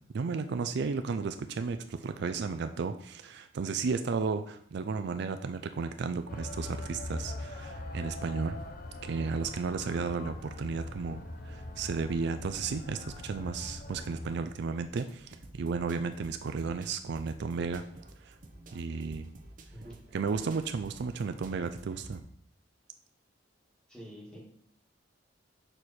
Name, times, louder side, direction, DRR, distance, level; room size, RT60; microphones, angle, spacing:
voice 1, 0.1-8.6 9.0-17.8 18.3-18.4 18.7-19.3 20.1-22.2, right 4 dB, 65° right, 9 dB, 0.4 m, -33 dB
sound 1, 6.3-14.4, left 2 dB, 50° left, 0.6 m, -42 dB
sound 2, 14.8-22.2, right 1 dB, 45° right, 0.8 m, -51 dB
voice 2, 23.9-24.4, equal, 5° left, -3 dB, 1.8 m, -46 dB
6.5 x 4.6 x 4.2 m, 0.65 s
head